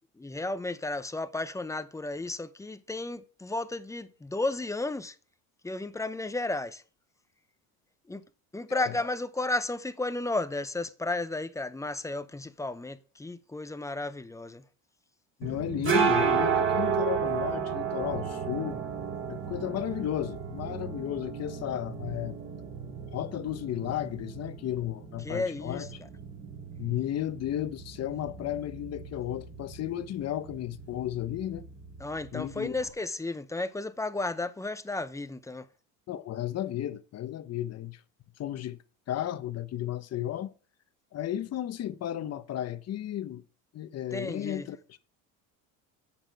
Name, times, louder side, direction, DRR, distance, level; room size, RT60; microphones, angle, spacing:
voice 1, 0.2-5.1 5.6-6.8 8.1-8.2 8.5-14.6 25.2-25.9 32.0-35.7 44.1-44.7, left 2 dB, 10° left, 0.7 m, -33 dB
voice 2, 15.4-18.8 19.3-22.4 23.1-26.0 26.8-31.6 32.3-32.7 36.1-38.0 38.4-38.8 39.1-40.5 41.1-43.4 43.7-45.0, left 12 dB, 40° left, 1.0 m, -34 dB
sound 1, 15.4-32.9, right 6 dB, 35° right, 3.1 m, -33 dB
10.0 x 8.8 x 4.8 m
cardioid pair, 125°, 38 cm